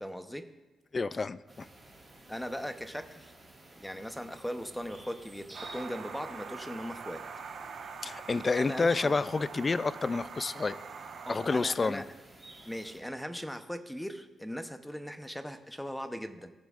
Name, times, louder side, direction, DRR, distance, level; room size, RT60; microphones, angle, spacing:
voice 1, 0.0-0.5 2.3-3.3 3.8-7.2 8.6-9.2 11.3-12.1 12.7-16.5, equal, 5° left, 8 dB, 0.8 m, -39 dB
voice 2, 0.9-1.7 8.0-10.8 11.3-12.0, left 4 dB, 30° left, 16 dB, 0.3 m, -29 dB
sound 1, 1.5-13.0, right 1 dB, 15° right, 3.7 m, -54 dB
sound 2, 5.5-11.6, right 5 dB, 70° right, 1.2 m, -44 dB
16.0 x 14.0 x 2.5 m, 1.1 s
cardioid pair, 125°, 0 cm